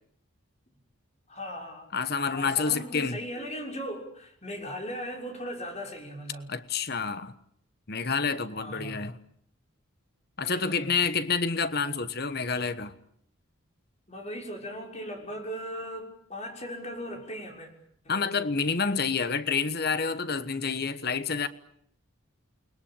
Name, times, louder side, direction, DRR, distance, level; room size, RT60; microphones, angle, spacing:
voice 1, 1.3-1.9 2.3-6.5 8.5-9.1 10.4-11.0 14.1-17.7 18.0-18.3, equal, 30° left, 6.2 m, -38 dB
voice 2, 1.9-3.2 6.5-7.3 7.9-9.2 10.4-12.9 18.1-21.5, left 5 dB, 50° left, 1.2 m, -28 dB
29.5 x 21.5 x 8.8 m
head